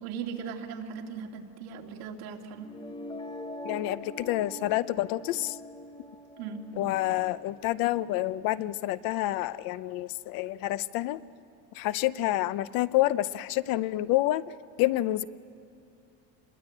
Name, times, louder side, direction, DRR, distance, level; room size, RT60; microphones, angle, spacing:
voice 1, 0.0-2.7 6.4-6.6, right 6 dB, 65° right, 2 dB, 2.6 m, -38 dB
sound 1, 2.6-8.5, left 1 dB, 10° left, 1.4 m, -44 dB
voice 2, 3.6-5.6 6.8-11.2 11.8-14.4 14.8-15.2, left 16 dB, 65° left, 16 dB, 0.7 m, -28 dB
28.0 x 22.0 x 8.7 m, 2.4 s
cardioid pair, 165°, 39 cm